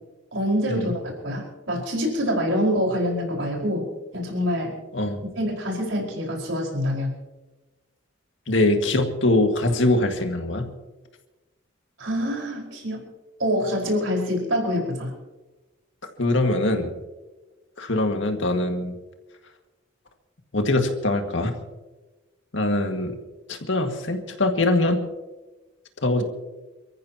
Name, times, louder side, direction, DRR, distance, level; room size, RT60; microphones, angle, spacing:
voice 1, 0.3-0.9 1.2-3.9 4.1-4.7 5.3-7.2 12.0-13.1 13.4-15.1, equal, 80° right, -1 dB, 4.9 m, -25 dB
voice 2, 8.5-10.7 16.2-16.9 17.8-19.0 20.5-21.6 22.5-23.2 23.5-25.0 26.0-26.2, left 2 dB, 70° left, 4 dB, 1.9 m, -22 dB
29.0 x 14.5 x 2.9 m, 1.1 s
head